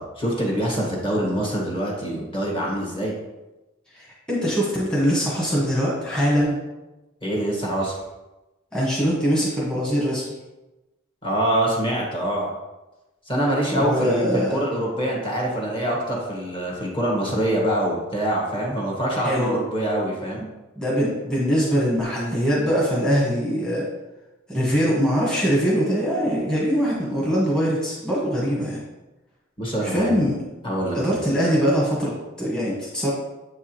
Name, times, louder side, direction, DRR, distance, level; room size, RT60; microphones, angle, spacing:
voice 1, 0.0-3.1 7.2-8.0 11.2-12.5 13.3-20.5 29.6-30.2 30.6-31.2, right 1 dB, 25° left, -3 dB, 1.5 m, -25 dB
voice 2, 3.9-6.6 8.7-10.2 13.7-14.6 19.2-19.6 20.7-23.9 24.5-28.8 29.8-30.4 30.9-33.1, equal, 5° left, -7 dB, 1.3 m, -22 dB
7.6 x 4.7 x 3.0 m, 1.1 s
head